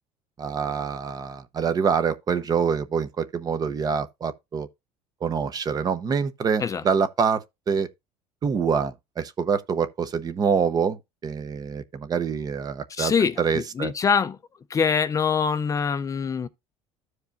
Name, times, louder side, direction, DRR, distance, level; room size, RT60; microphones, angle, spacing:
voice 1, 0.4-4.7 5.2-7.9 8.4-11.0 11.2-13.1 13.4-13.9, right 6 dB, 30° right, 0.8 m, -25 dB
voice 2, 12.9-14.4 14.7-16.5, left 6 dB, 25° left, 0.6 m, -24 dB
14.0 x 4.9 x 2.6 m
cardioid pair, 130°, 13 cm